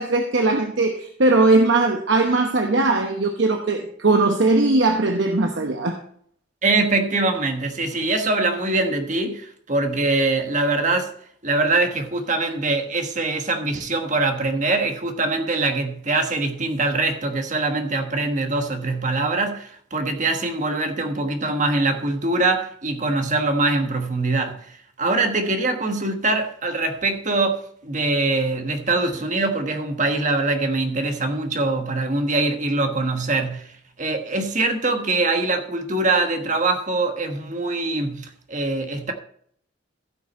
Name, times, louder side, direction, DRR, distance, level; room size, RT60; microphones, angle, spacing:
voice 1, 0.0-6.0, right 2 dB, 75° right, 1.0 m, -19 dB
voice 2, 6.6-11.1 11.4-39.1, right 2 dB, 40° right, 1.4 m, -23 dB
15.5 x 6.1 x 4.2 m
head